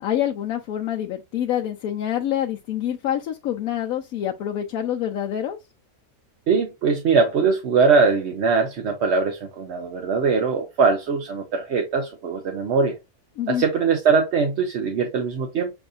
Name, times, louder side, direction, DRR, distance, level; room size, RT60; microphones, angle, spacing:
voice 1, 0.0-5.6 13.4-13.6, left 10 dB, 75° left, 1.0 m, -26 dB
voice 2, 6.5-13.0 13.5-15.7, right 5 dB, 55° right, 0.9 m, -21 dB
7.0 x 2.6 x 2.5 m
omnidirectional pair, 1.6 m